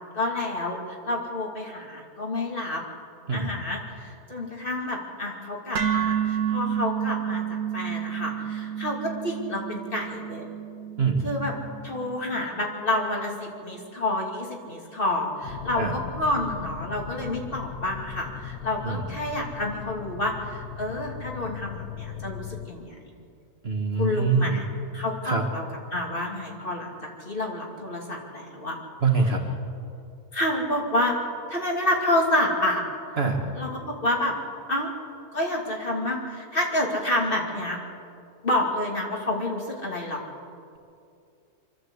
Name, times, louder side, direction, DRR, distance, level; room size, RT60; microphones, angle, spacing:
voice 1, 0.1-2.8 3.3-7.4 7.7-10.5 11.2-11.5 11.8-23.0 24.0-24.7 24.9-25.6 25.9-28.8 30.3-31.1 31.5-33.2 33.5-34.3 34.7-34.9 35.3-37.8 38.4-40.2, left 1 dB, 35° left, -1 dB, 2.9 m, -29 dB
sound 1, 5.7-13.9, right 9 dB, 70° right, 1.7 m, -31 dB
sound 2, 15.4-22.7, left 8 dB, 85° left, 1.5 m, -38 dB
voice 2, 23.6-24.6 25.2-25.4 29.0-29.4 33.2-33.4, right 4 dB, 40° right, 2 dB, 1.8 m, -24 dB
25.0 x 12.5 x 8.2 m, 2.5 s
omnidirectional pair, 1.6 m